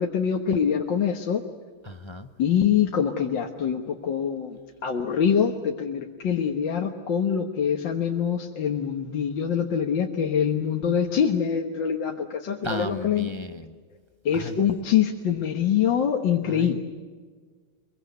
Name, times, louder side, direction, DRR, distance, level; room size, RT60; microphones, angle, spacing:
voice 1, 0.0-1.4 2.4-13.3 14.3-16.8, left 8 dB, 65° left, 2 dB, 2.0 m, -24 dB
voice 2, 1.8-2.3 12.6-13.8 14.3-14.6 16.4-16.8, left 1 dB, 35° left, 8 dB, 0.4 m, -34 dB
24.0 x 23.0 x 8.2 m, 1.5 s
omnidirectional pair, 2.2 m